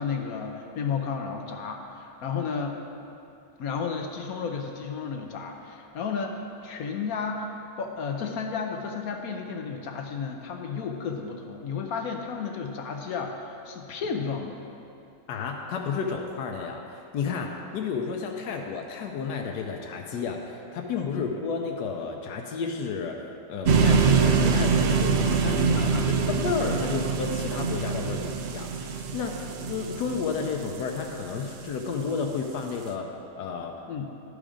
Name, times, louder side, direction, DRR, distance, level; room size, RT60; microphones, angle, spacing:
voice 1, 0.0-2.8 3.6-14.6 21.1-21.3 25.8-26.1 33.9-34.1, left 5 dB, 65° left, 3 dB, 1.1 m, -32 dB
voice 2, 15.3-16.8 17.1-23.2 23.5-29.4 29.6-33.1 33.4-33.7, left 5 dB, 90° left, 1 dB, 1.2 m, -31 dB
sound 1, 23.7-31.7, right 5 dB, 70° right, 0.6 m, -24 dB
11.5 x 5.0 x 5.0 m, 2.6 s
omnidirectional pair, 1.7 m